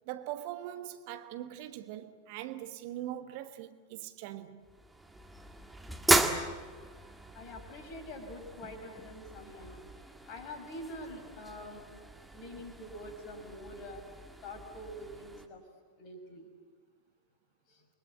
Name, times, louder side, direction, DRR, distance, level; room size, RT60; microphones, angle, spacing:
voice 1, 0.1-4.6, right 12 dB, 45° right, 1.3 m, -41 dB
sound 1, 4.6-15.5, right 2 dB, 5° right, 1.9 m, -36 dB
voice 2, 6.6-6.9 7.3-9.8 10.3-11.9 12.3-14.0 14.4-15.6 16.0-16.5 17.7-17.8, left 1 dB, 40° left, 6.2 m, -45 dB
29.0 x 23.0 x 8.5 m
figure-of-eight pair, 90°, 0 cm